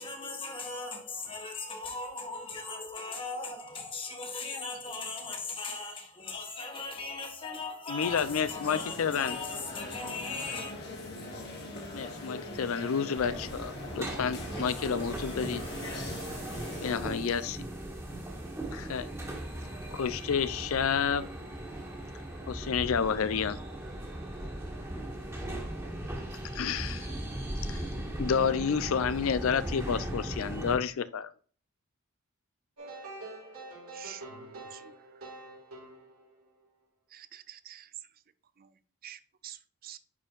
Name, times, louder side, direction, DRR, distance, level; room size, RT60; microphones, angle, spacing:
voice 1, 0.0-10.8, left 3 dB, 25° left, 1.3 m, -38 dB
voice 2, 7.9-9.4 11.9-15.6 16.8-17.6 18.7-19.1 19.9-21.3 22.5-23.6 26.5-27.1 27.7-27.8 28.2-31.3, left 6 dB, 70° left, 0.4 m, -30 dB
sound 1, 8.0-16.9, left 2 dB, 50° left, 1.8 m, -42 dB
sound 2, 13.2-30.7, right 1 dB, 15° right, 1.5 m, -38 dB
sound 3, 32.8-36.6, right 2 dB, 90° right, 2.7 m, -46 dB
voice 3, 33.9-34.9 37.1-37.9 39.0-39.6 39.8-40.0, right 11 dB, 40° right, 0.4 m, -47 dB
9.9 x 4.3 x 2.4 m
head